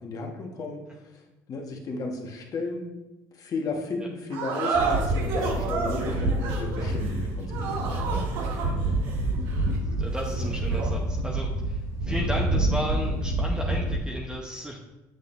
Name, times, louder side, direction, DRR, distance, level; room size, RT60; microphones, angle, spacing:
voice 1, 0.0-2.9 3.3-8.0, left 3 dB, 45° left, 1 dB, 1.4 m, -34 dB
sound 1, 4.3-11.0, right 4 dB, 75° right, 1.4 m, -31 dB
sound 2, 4.7-14.0, right 1 dB, 50° right, 2.5 m, -28 dB
voice 2, 9.6-14.8, equal, 10° right, -1 dB, 0.9 m, -34 dB
8.1 x 6.7 x 2.6 m, 1.1 s
supercardioid pair, 85°, 8 cm